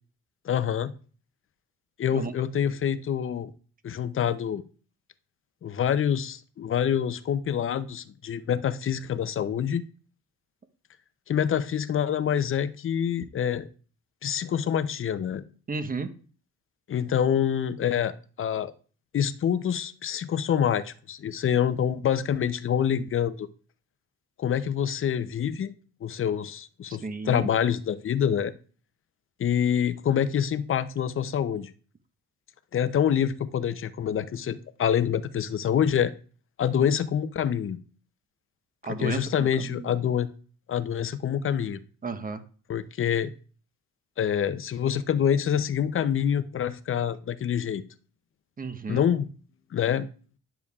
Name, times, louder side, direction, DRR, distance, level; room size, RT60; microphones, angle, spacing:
voice 1, 0.4-0.9 2.0-3.5 3.8-4.6 5.6-9.8 11.3-13.7 14.2-15.4 16.9-18.7 19.1-23.5 24.4-25.7 26.0-28.5 29.4-31.7 32.7-36.1 36.6-37.8 38.9-40.3 40.7-41.8 42.7-43.3 44.2-47.8 48.9-49.3 49.7-50.1, left 9 dB, 45° left, 13 dB, 0.6 m, -26 dB
voice 2, 15.7-16.1 26.9-27.5 38.8-39.9 42.0-42.4 48.6-49.0, right 4 dB, 30° right, 9 dB, 0.9 m, -33 dB
10.5 x 6.8 x 2.4 m, 0.40 s
cardioid pair, 90°, 30 cm